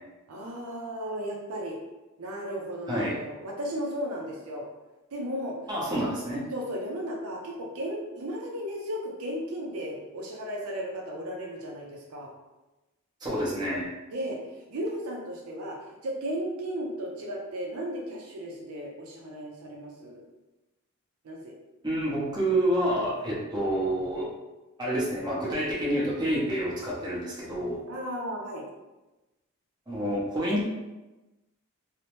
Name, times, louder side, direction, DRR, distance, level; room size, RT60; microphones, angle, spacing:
voice 1, 0.3-1.8 2.2-4.7 5.1-5.6 6.0-6.1 6.5-12.3 14.1-15.8 16.0-20.2 21.2-21.5 27.9-28.6, equal, 70° right, -1 dB, 0.5 m, -35 dB
voice 2, 5.7-6.4 13.2-13.9 21.8-24.3 24.8-27.8 29.9-30.6, right 1 dB, 20° right, -7 dB, 0.8 m, -28 dB
2.8 x 2.0 x 3.0 m, 1.1 s
head